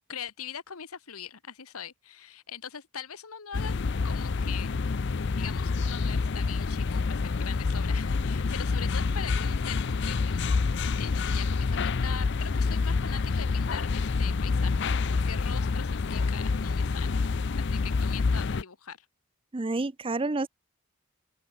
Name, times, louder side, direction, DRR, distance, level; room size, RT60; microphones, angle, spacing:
voice 1, 0.1-3.7 4.0-4.7 5.4-17.3 17.6-19.1, left 8 dB, 80° left, 1.3 m, -42 dB
sound 1, 3.5-18.6, left 4 dB, 50° left, 0.5 m, -27 dB
voice 2, 19.5-20.5, right 2 dB, 25° right, 0.5 m, -29 dB
open air
head